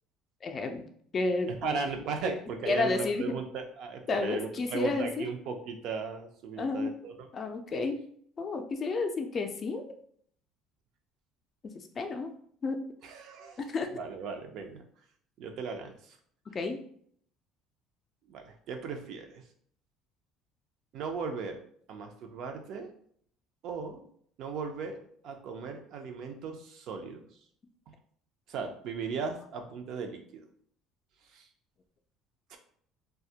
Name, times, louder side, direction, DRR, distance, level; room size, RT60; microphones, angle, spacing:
voice 1, 0.4-0.8 1.1-1.8 2.7-3.4 4.1-5.3 6.6-6.9 7.3-8.0 8.4-9.8 11.6-12.3 12.6-12.8 13.6-13.9 16.5-16.8, left 3 dB, 35° left, 6 dB, 0.4 m, -31 dB
voice 2, 1.5-7.3 13.0-14.8 15.4-16.2 18.3-19.4 20.9-21.6 21.9-22.9 23.6-24.1 24.4-25.0 25.2-27.3 28.5-30.4 31.3-31.5 32.5-32.6, right 5 dB, 65° right, 5 dB, 0.5 m, -37 dB
2.2 x 2.0 x 2.7 m, 0.62 s
supercardioid pair, 95°, 0 cm